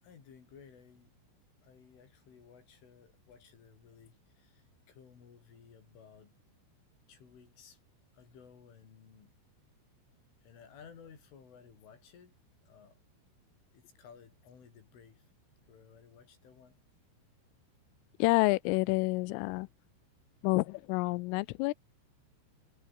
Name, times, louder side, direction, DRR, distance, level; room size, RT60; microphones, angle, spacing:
voice 1, 0.0-1.1 1.6-6.4 7.1-7.8 8.1-9.3 10.4-12.4 12.6-13.0 13.7-15.3 15.7-16.8, left 7 dB, 75° left, 7.3 m, -57 dB
voice 2, 18.2-19.7 20.4-21.7, left 24 dB, 90° left, 3.2 m, -28 dB
omnidirectional pair, 5.7 m